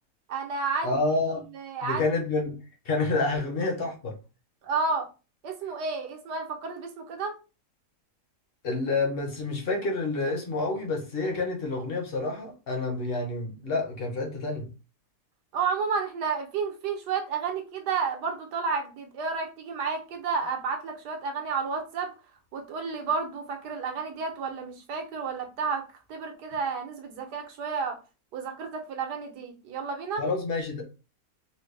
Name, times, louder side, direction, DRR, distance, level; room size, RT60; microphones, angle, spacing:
voice 1, 0.3-1.0 1.5-2.1 4.6-5.1 5.4-7.3 15.5-22.1 22.5-25.8 26.1-28.0 28.3-30.2, right 5 dB, 85° right, 1.4 m, -31 dB
voice 2, 0.8-1.4 1.8-2.5 2.8-4.2 8.6-14.7 30.2-30.9, left 3 dB, 45° left, 0.9 m, -28 dB
4.2 x 2.1 x 3.2 m
omnidirectional pair, 1.7 m